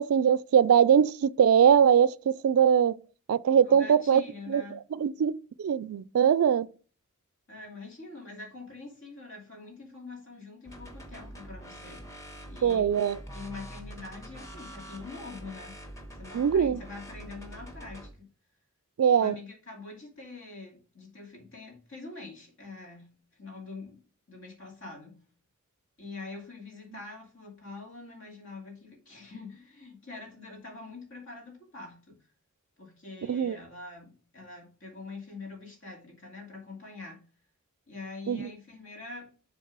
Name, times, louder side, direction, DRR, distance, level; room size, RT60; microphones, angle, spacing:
voice 1, 0.0-3.0 3.3-4.2 4.5-6.7 12.6-13.2 16.3-16.8 19.0-19.4 33.3-33.6 38.3-38.5, right 8 dB, 75° right, 0.3 m, -22 dB
voice 2, 3.6-4.8 7.5-12.0 12.5-12.9 13.3-15.8 16.1-18.3 19.2-23.1 23.4-24.0 24.3-25.2 26.0-32.2 32.8-37.2 37.9-39.3, left 3 dB, 65° left, 2.6 m, -44 dB
sound 1, 10.6-18.1, equal, 15° left, 1.3 m, -45 dB
7.2 x 3.6 x 6.0 m
head